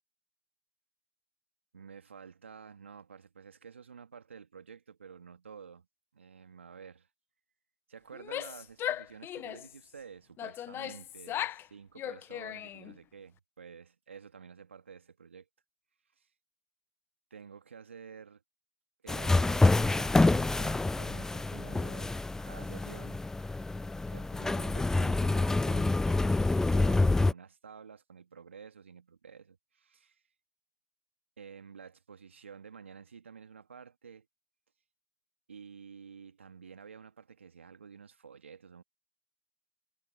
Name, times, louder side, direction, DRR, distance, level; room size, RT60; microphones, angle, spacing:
voice 1, 1.7-5.9 6.1-7.1 7.9-15.5 16.2-16.3 17.3-18.4 19.0-23.3 24.1-30.2 31.4-34.3 35.5-38.8, right 6 dB, 80° right, 2.3 m, -51 dB
Female speech woman speaking / Yell, 8.1-9.8 10.4-11.7 12.0-12.9, left 12 dB, 35° left, 0.9 m, -37 dB
sound 1, 19.1-27.3, left 2 dB, 10° left, 0.3 m, -27 dB
figure-of-eight pair, 80°, 6 cm